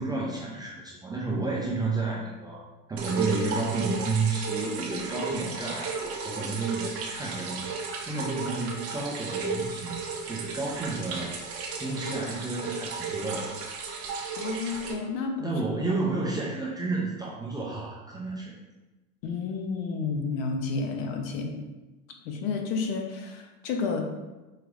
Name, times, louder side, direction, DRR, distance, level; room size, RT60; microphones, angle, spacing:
voice 1, 0.0-2.6 2.9-7.7 8.1-10.0 10.3-11.4 11.8-13.5 15.4-18.5, right 3 dB, 10° right, -5 dB, 0.3 m, -31 dB
sound 1, 3.0-14.9, right 4 dB, 35° right, 0.7 m, -34 dB
voice 2, 14.4-15.5 19.2-21.6 22.2-24.1, left 4 dB, 60° left, 3 dB, 0.8 m, -31 dB
4.8 x 3.0 x 2.4 m, 1.1 s
hypercardioid pair, 95°, 44 cm